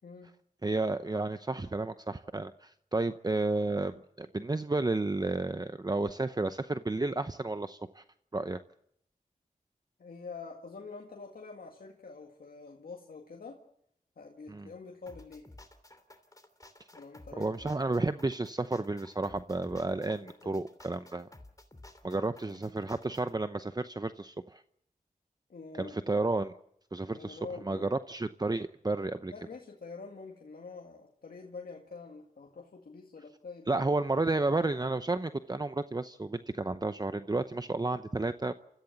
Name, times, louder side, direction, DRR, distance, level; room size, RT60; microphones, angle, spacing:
voice 1, 0.6-8.0 8.3-8.6 14.5-14.7 17.4-21.3 22.0-24.6 25.8-26.5 26.9-29.3 33.7-38.5, right 2 dB, 25° right, 11 dB, 0.8 m, -32 dB
voice 2, 10.0-13.6 14.2-15.5 16.9-17.8 19.9-20.6 22.5-22.7 25.5-26.0 27.1-28.0 29.3-33.8, left 4 dB, 80° left, 1 dB, 2.0 m, -46 dB
sound 1, 15.1-23.3, left 1 dB, 25° left, 3.1 m, -54 dB
28.5 x 15.0 x 7.2 m, 0.72 s
cardioid pair, 45°, 15 cm